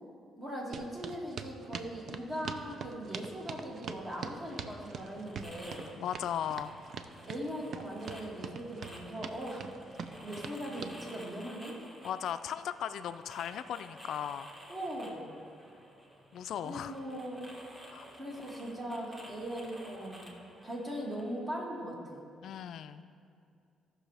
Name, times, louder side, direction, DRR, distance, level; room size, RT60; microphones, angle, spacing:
voice 1, 0.4-5.9 7.3-9.6 10.2-11.8 14.7-15.3 16.6-17.5 18.1-20.2 20.6-22.3, equal, 30° right, -3 dB, 2.4 m, -40 dB
sound 1, 0.7-11.0, right 6 dB, 60° right, 0.5 m, -43 dB
sound 2, 3.9-21.4, equal, 15° right, 1.7 m, -52 dB
voice 2, 6.0-6.7 12.0-14.5 16.3-16.9 17.9-18.1 22.4-23.0, left 9 dB, 75° left, 11 dB, 0.3 m, -37 dB
16.5 x 6.1 x 3.4 m, 2.4 s
cardioid pair, 90°, 0 cm